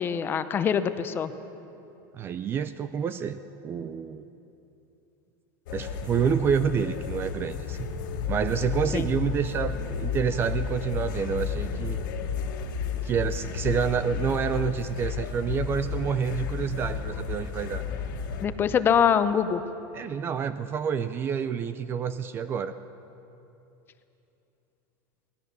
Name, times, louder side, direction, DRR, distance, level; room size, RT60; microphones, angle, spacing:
voice 1, 0.0-1.3 8.9-9.1 18.4-19.6, left 7 dB, 20° left, 11 dB, 0.7 m, -24 dB
voice 2, 2.1-4.2 5.7-7.9 8.3-12.0 13.0-17.9 19.9-22.8, right 7 dB, 20° right, 12 dB, 0.5 m, -28 dB
sound 1, 5.7-18.4, left 6 dB, 75° left, 2.0 m, -32 dB
24.0 x 18.5 x 6.8 m, 2.9 s
supercardioid pair, 165°, 11 cm